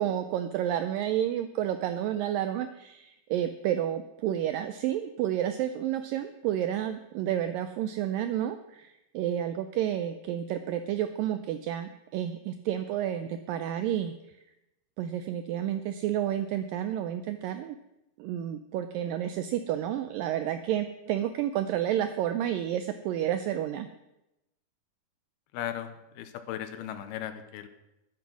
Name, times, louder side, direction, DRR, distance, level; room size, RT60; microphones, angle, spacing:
voice 1, 0.0-14.4 15.0-17.8 18.2-23.9, right 11 dB, 85° right, 10 dB, 2.0 m, -30 dB
voice 2, 25.5-27.7, left 11 dB, 80° left, 10 dB, 2.8 m, -37 dB
11.5 x 11.0 x 6.1 m, 0.90 s
omnidirectional pair, 4.6 m